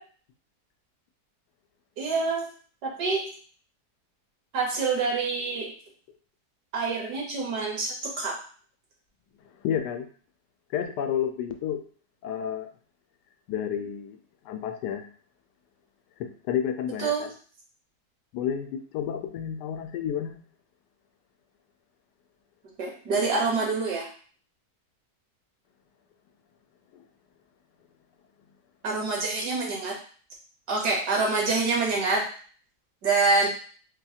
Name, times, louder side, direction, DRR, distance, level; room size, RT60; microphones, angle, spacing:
voice 1, 2.0-2.5 2.8-3.3 4.5-5.7 6.7-8.4 17.0-17.3 22.8-24.1 28.8-29.9 30.7-32.2 33.0-33.5, right 3 dB, 75° right, -2 dB, 1.7 m, -26 dB
voice 2, 9.6-10.1 10.7-11.8 12.2-12.7 13.5-14.2 14.4-15.1 16.2-17.3 18.3-20.4, left 9 dB, 90° left, 6 dB, 1.2 m, -30 dB
4.6 x 2.3 x 2.7 m, 0.43 s
omnidirectional pair, 1.7 m